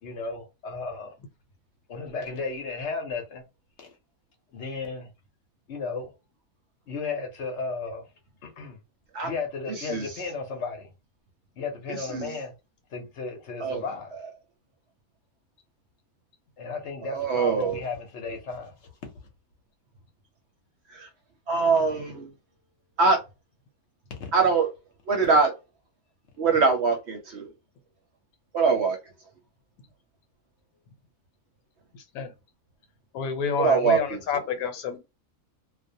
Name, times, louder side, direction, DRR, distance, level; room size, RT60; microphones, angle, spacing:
voice 1, 0.0-1.1 1.9-3.4 3.8-3.9 4.5-5.1 5.7-6.1 6.9-8.1 8.4-8.8 9.2-10.9 11.6-12.5 12.9-14.1 16.6-18.7 19.0-19.1 24.2-24.3, left 4 dB, 60° left, 0.9 m, -34 dB
voice 2, 9.8-10.1 11.9-12.3 13.6-13.8 17.1-17.8 20.9-21.1 21.5-22.3 23.0-23.2 24.3-24.7 25.1-25.5 26.4-27.5 28.5-29.0 33.6-34.2, right 4 dB, 60° right, 0.8 m, -23 dB
voice 3, 33.1-35.0, left 6 dB, 85° left, 1.1 m, -29 dB
2.4 x 2.1 x 2.6 m
omnidirectional pair, 1.5 m